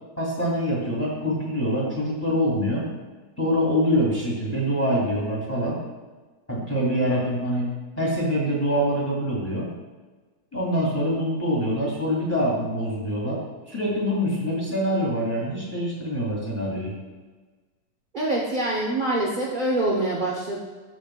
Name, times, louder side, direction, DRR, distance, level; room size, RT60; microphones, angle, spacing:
voice 1, 0.2-2.8 3.4-5.8 6.5-7.7 8.0-9.7 10.5-13.4 13.7-16.9, equal, 5° left, -5 dB, 2.1 m, -25 dB
voice 2, 18.1-20.6, right 1 dB, 60° right, -4 dB, 0.5 m, -25 dB
13.5 x 5.2 x 2.2 m, 1.3 s
omnidirectional pair, 2.1 m